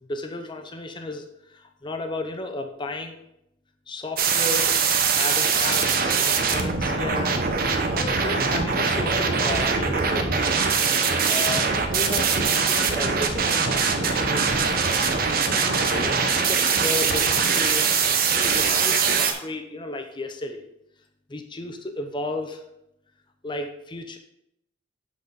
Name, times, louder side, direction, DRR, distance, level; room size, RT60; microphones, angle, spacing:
voice 1, 0.0-3.2 3.9-4.7 5.1-7.4 7.9-10.5 11.3-14.7 15.3-17.9 18.3-20.7 21.3-22.6 23.4-24.2, left 2 dB, 25° left, 4 dB, 0.6 m, -34 dB
sound 1, 4.2-19.3, right 5 dB, 55° right, 0.8 m, -22 dB
8.2 x 4.0 x 5.2 m, 0.79 s
head